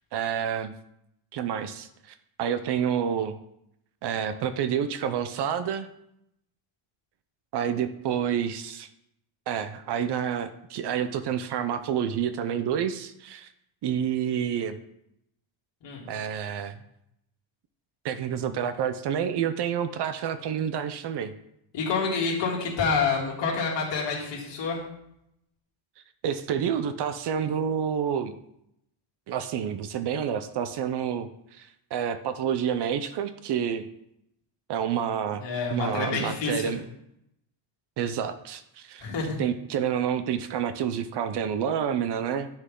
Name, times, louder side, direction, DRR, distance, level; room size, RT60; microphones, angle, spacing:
voice 1, 0.1-0.7 1.3-3.4 4.0-5.9 7.5-8.9 9.5-13.5 13.8-14.8 16.1-16.8 18.0-21.3 26.2-28.3 29.3-33.9 34.7-35.4 35.7-36.8 38.0-39.1 39.4-42.5, right 8 dB, 55° right, 11 dB, 0.6 m, -29 dB
voice 2, 21.7-24.8 35.4-36.7 39.0-39.4, left 5 dB, 55° left, -3 dB, 2.9 m, -28 dB
9.9 x 6.6 x 3.8 m, 0.78 s
cardioid pair, 170°, 50 cm